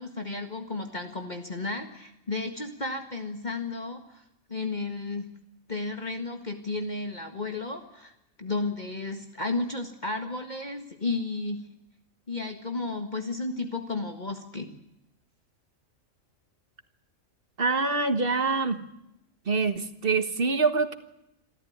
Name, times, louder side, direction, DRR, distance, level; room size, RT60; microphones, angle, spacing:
voice 1, 0.0-4.2 4.5-5.3 5.7-8.1 8.4-11.6 12.3-14.7, left 3 dB, 35° left, 5 dB, 1.9 m, -33 dB
voice 2, 17.6-18.8 19.5-20.9, right 4 dB, 45° right, 9 dB, 1.7 m, -25 dB
27.0 x 14.0 x 9.5 m, 0.85 s
omnidirectional pair, 1.4 m